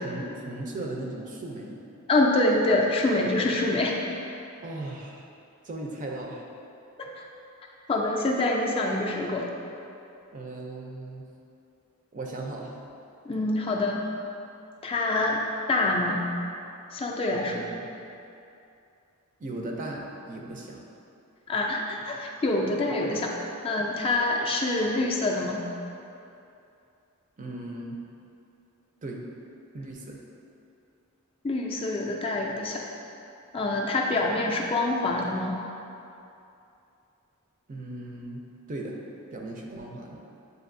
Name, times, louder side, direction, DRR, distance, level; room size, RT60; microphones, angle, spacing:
voice 1, 0.0-1.8 4.6-5.3 5.6-6.4 10.3-11.3 12.1-12.8 17.3-17.9 19.4-20.8 23.8-23.9 27.4-28.0 29.0-29.2 29.7-30.2 37.7-39.0 39.3-40.2, right 2 dB, 35° right, 0 dB, 0.5 m, -37 dB
voice 2, 2.1-4.0 7.0-7.2 7.9-9.5 13.3-14.1 14.8-15.4 15.7-16.2 16.9-17.7 21.5-23.3 23.6-25.6 31.4-32.8 33.5-35.6, left 2 dB, 25° left, -1 dB, 0.3 m, -26 dB
7.8 x 2.6 x 2.5 m, 2.7 s
head